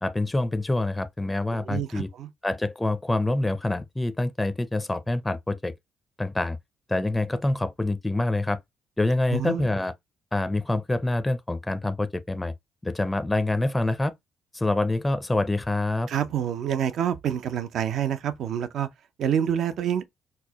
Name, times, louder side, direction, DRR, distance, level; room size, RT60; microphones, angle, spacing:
voice 1, 0.0-2.1 2.4-5.7 6.2-6.6 6.9-8.6 9.0-9.9 10.3-12.5 12.8-14.1 14.5-16.1, left 2 dB, 15° left, 0.4 m, -26 dB
voice 2, 1.5-2.3 9.3-9.7 16.1-18.9 19.2-20.0, right 9 dB, 70° right, 0.5 m, -27 dB
4.4 x 2.1 x 2.8 m
cardioid pair, 90°, 0 cm